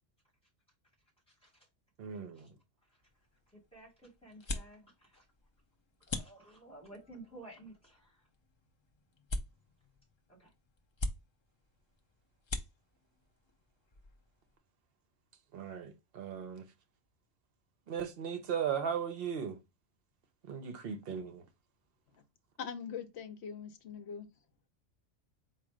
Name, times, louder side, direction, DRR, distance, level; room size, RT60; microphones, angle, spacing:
voice 1, 1.3-1.7 2.3-2.5 2.9-3.0 3.5-5.3 6.1-8.3 10.3-10.5, right 2 dB, 5° left, 2.5 m, -54 dB
voice 2, 2.0-2.5 15.5-16.7 17.9-19.6 20.5-21.4, right 7 dB, 55° right, 0.8 m, -37 dB
sound 1, 3.0-14.6, left 2 dB, 45° left, 0.3 m, -45 dB
voice 3, 22.6-24.3, left 7 dB, 65° left, 0.9 m, -42 dB
4.1 x 2.5 x 4.8 m
omnidirectional pair, 1.3 m